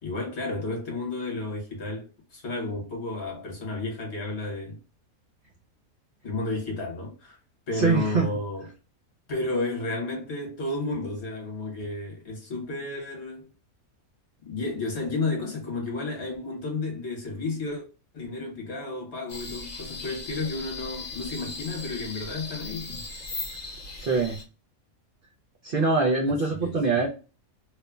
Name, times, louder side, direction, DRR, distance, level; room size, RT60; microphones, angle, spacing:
voice 1, 0.0-4.8 6.2-7.4 7.7-8.7 9.3-13.5 14.4-17.8 18.1-23.0 26.3-27.1, left 2 dB, 55° left, 1.2 m, -32 dB
voice 2, 7.7-8.3 24.0-24.4 25.6-27.1, right 4 dB, 65° right, 0.5 m, -23 dB
sound 1, 19.3-24.4, left 3 dB, 35° left, 0.8 m, -38 dB
3.1 x 2.1 x 2.3 m
omnidirectional pair, 1.5 m